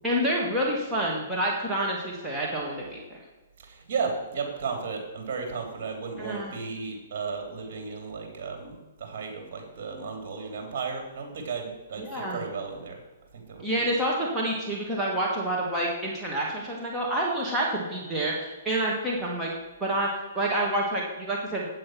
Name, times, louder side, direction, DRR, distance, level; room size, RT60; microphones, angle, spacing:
voice 1, 0.0-3.2 6.2-6.5 12.0-12.4 13.6-19.5 19.8-21.7, right 1 dB, 10° right, -4 dB, 1.7 m, -28 dB
voice 2, 3.6-13.0 13.3-13.8, right 5 dB, 55° right, 3 dB, 3.2 m, -34 dB
8.9 x 7.5 x 6.1 m, 1.2 s
hypercardioid pair, 145°, 0 cm